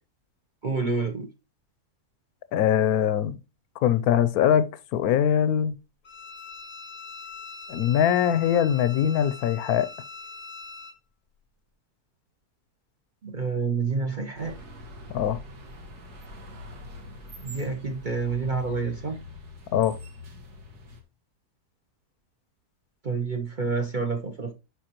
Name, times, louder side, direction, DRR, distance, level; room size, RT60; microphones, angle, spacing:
voice 1, 0.6-1.3 13.2-14.6 17.4-19.2 23.0-24.5, right 4 dB, 45° right, 0.7 m, -28 dB
voice 2, 2.5-3.4 3.8-5.7 7.7-9.9 15.1-15.4 19.7-19.9, left 9 dB, 75° left, 1.0 m, -22 dB
Bowed string instrument, 6.0-11.0, left 4 dB, 40° left, 0.7 m, -42 dB
sound 1, 14.3-21.0, left 2 dB, 80° right, 2.2 m, -44 dB
11.5 x 4.9 x 3.0 m
omnidirectional pair, 1.7 m